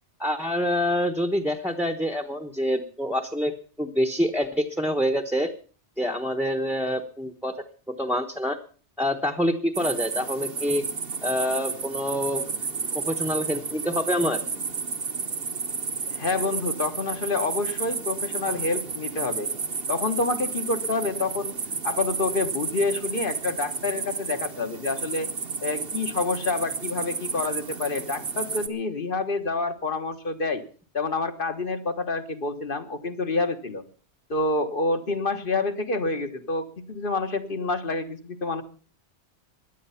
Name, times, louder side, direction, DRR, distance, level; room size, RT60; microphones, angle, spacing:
voice 1, 0.2-3.5 3.8-5.5 6.0-7.6 8.0-8.6 9.0-10.8 11.2-12.4 13.1-14.4, equal, ahead, 6 dB, 1.0 m, -26 dB
sound 1, 9.7-28.7, right 5 dB, 60° right, 1.4 m, -32 dB
voice 2, 16.1-19.5 19.9-21.6 21.8-25.3 25.6-30.6 30.9-33.8 34.3-38.6, left 3 dB, 50° left, 7 dB, 1.6 m, -28 dB
17.0 x 11.0 x 5.7 m, 0.40 s
omnidirectional pair, 1.1 m